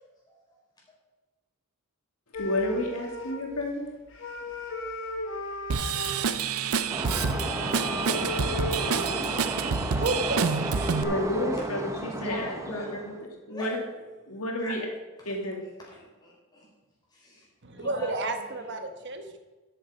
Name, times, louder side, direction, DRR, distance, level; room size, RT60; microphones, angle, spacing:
sound 1, 2.3-3.7 4.1-6.2 7.1-9.6 10.3-10.4 10.5-11.2, left 1 dB, 60° left, 1.6 m, -36 dB
voice 1, 2.4-3.9 11.0-13.1 13.5-13.8 14.3-14.9 15.3-15.6, left 1 dB, 80° left, 0 dB, 2.5 m, -31 dB
Drum kit / Drum, 5.7-11.0, right 6 dB, 90° right, 0.6 m, -28 dB
sound 2, 6.9-13.2, right 1 dB, 15° right, 1.1 m, -34 dB
voice 2, 9.6-10.9 17.6-19.4, right 2 dB, 55° right, 6 dB, 1.3 m, -32 dB
voice 3, 12.1-13.0 13.5-13.8 14.6-14.7 15.2-15.4 15.8-16.7 17.1-17.5 17.7-18.8, equal, 20° left, -4 dB, 4.5 m, -41 dB
12.5 x 7.8 x 5.0 m, 1.2 s
head